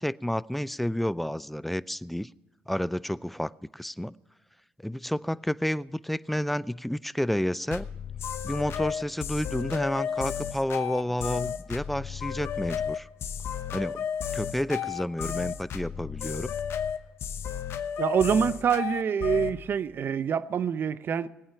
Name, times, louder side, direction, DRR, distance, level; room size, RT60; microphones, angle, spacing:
voice 1, 0.0-2.3 2.7-4.1 4.8-7.9 8.4-13.1 13.7-14.0 14.3-16.5, equal, 5° left, 0.4 m, -30 dB
sound 1, 7.7-19.6, left 8 dB, 65° left, 0.9 m, -33 dB
voice 2, 18.0-21.3, right 7 dB, 55° right, 0.6 m, -26 dB
19.5 x 8.9 x 5.6 m
cardioid pair, 80°, 5 cm